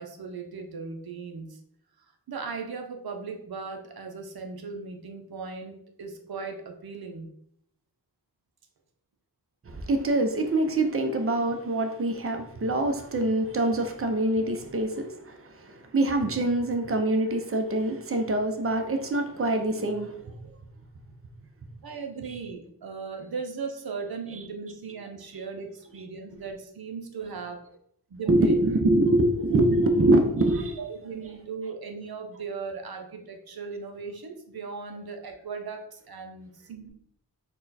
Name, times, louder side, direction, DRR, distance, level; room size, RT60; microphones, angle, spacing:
voice 1, 0.0-1.6 2.3-7.3 21.8-27.6 28.1-28.5 30.8-36.9, right 5 dB, 65° right, 4 dB, 0.7 m, -38 dB
voice 2, 9.7-20.3 22.2-22.4 25.3-25.5 25.9-26.0 28.3-30.8 31.2-31.3, right 1 dB, 35° right, 5 dB, 0.7 m, -25 dB
4.4 x 2.3 x 4.1 m, 0.70 s
cardioid pair, 65°, 40 cm